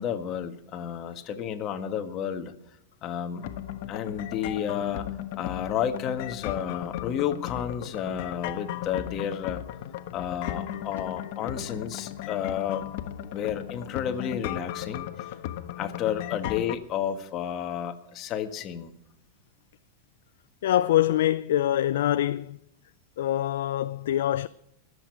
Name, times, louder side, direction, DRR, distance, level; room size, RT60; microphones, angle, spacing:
voice 1, 0.0-2.5 3.0-3.5 3.9-5.1 5.4-9.6 10.1-12.8 13.3-15.3 15.8-18.9, left 9 dB, 35° left, 1.6 m, -31 dB
sound 1, 3.4-16.8, left 12 dB, 60° left, 1.2 m, -36 dB
voice 2, 20.6-22.6 23.2-24.5, left 12 dB, 75° left, 0.4 m, -24 dB
22.0 x 8.3 x 4.7 m
supercardioid pair, 135°, 0 cm